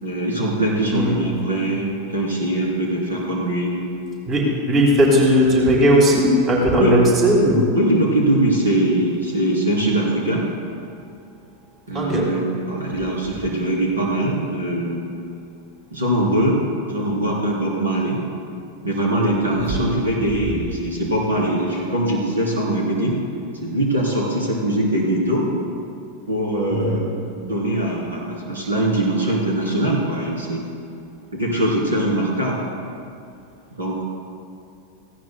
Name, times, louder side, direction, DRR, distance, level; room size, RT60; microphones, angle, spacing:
voice 1, 0.0-3.8 6.8-7.0 7.7-10.5 11.9-15.1 15.9-16.6 16.9-18.2 18.8-23.2 23.6-25.5 26.3-27.1 27.4-30.6 31.3-32.6 33.7-34.0, right 1 dB, 70° right, -4 dB, 3.0 m, -22 dB
voice 2, 0.8-1.3 4.3-7.6 11.9-12.3 19.6-19.8 26.7-27.0, equal, 30° right, -2 dB, 2.9 m, -17 dB
18.0 x 16.0 x 2.2 m, 2.5 s
figure-of-eight pair, 90°, 0 cm